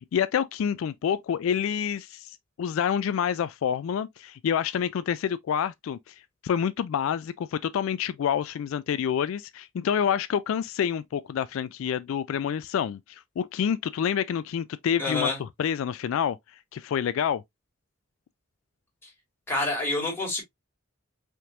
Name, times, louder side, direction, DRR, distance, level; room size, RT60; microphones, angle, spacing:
voice 1, 0.0-17.4, left 8 dB, 75° left, 0.3 m, -28 dB
voice 2, 15.0-15.4 19.5-20.4, left 2 dB, 10° left, 2.5 m, -27 dB
5.5 x 3.6 x 2.4 m
head